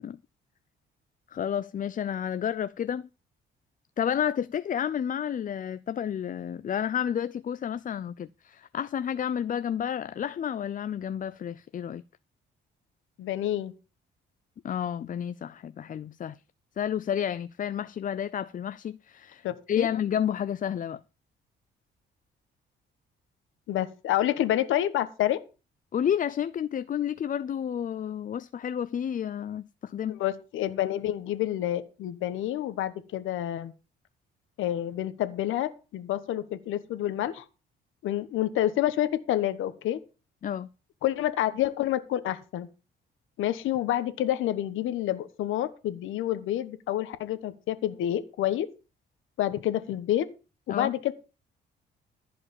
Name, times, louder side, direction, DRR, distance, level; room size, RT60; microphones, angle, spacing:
voice 1, 1.3-3.1 4.0-12.0 14.6-16.4 16.8-21.0 25.9-30.2 40.4-40.7 50.7-50.9, left 9 dB, 40° left, 0.5 m, -31 dB
voice 2, 13.2-13.7 19.4-19.9 23.7-25.4 30.1-33.7 34.6-37.4 38.0-40.0 41.0-42.7 43.4-48.7 49.4-50.3 50.7-51.1, left 12 dB, 85° left, 1.3 m, -28 dB
15.0 x 5.1 x 7.1 m
cardioid pair, 90°, 20 cm